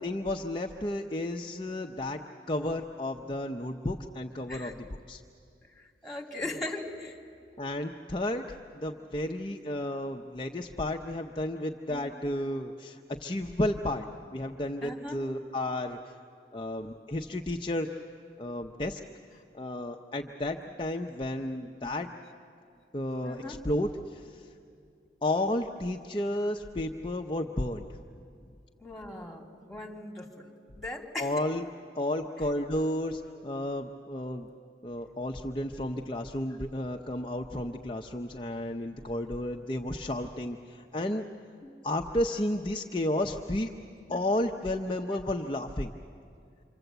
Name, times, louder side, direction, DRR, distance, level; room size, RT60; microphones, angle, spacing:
voice 1, 0.0-2.2 2.5-5.2 7.6-14.1 14.3-16.0 16.5-17.9 18.4-19.0 19.5-22.1 22.9-24.5 25.2-27.9 31.2-31.6 31.9-34.5 34.8-41.2 41.8-43.7 44.1-45.9, left 1 dB, 30° left, 2 dB, 0.7 m, -32 dB
voice 2, 5.8-7.2 9.5-9.6 11.9-12.1 14.8-15.2 20.6-20.7 21.8-21.9 23.2-23.6 28.8-30.5 30.8-31.3 44.1-44.2, left 2 dB, ahead, 0 dB, 2.4 m, -39 dB
27.0 x 25.5 x 8.0 m, 2.4 s
head